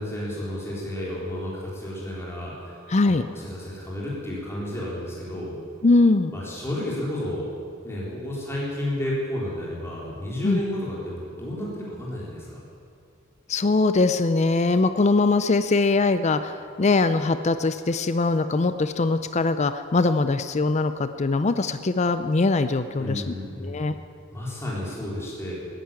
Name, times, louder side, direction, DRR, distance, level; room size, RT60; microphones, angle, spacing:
voice 1, 0.0-2.8 3.0-5.6 6.3-7.5 7.8-12.6 23.0-23.9 24.3-25.5, left 1 dB, 15° left, -6 dB, 3.9 m, -32 dB
voice 2, 2.9-3.2 5.8-6.3 10.4-10.6 13.5-24.0, left 3 dB, 35° left, 11 dB, 0.5 m, -22 dB
15.5 x 10.5 x 8.8 m, 2.2 s
head